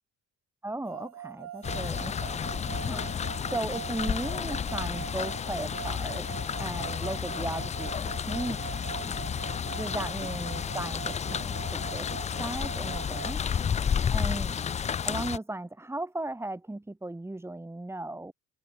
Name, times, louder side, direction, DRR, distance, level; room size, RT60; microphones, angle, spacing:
voice 1, 0.6-9.1 9.8-13.4 14.1-14.6 15.0-18.3, right 2 dB, 10° right, 6.0 m, -37 dB
sound 1, 0.8-13.3, right 11 dB, 60° right, 7.8 m, -42 dB
sound 2, 1.6-15.4, left 7 dB, 25° left, 0.4 m, -32 dB
cardioid pair, 160°, 31 cm